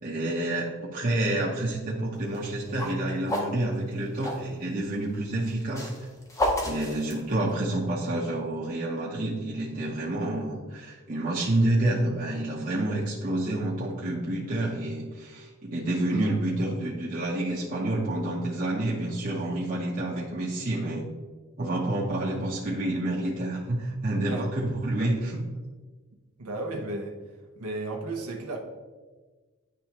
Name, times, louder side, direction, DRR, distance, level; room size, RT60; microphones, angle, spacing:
voice 1, 0.0-5.9 6.6-21.0 21.6-25.4, right 1 dB, 40° right, -5 dB, 0.7 m, -28 dB
sound 1, 2.2-4.5 5.4-7.7, equal, 15° left, 0.7 m, -31 dB
voice 2, 26.4-27.2 27.6-28.6, right 2 dB, 90° right, 1 dB, 0.8 m, -34 dB
10.0 x 3.4 x 2.9 m, 1.3 s
head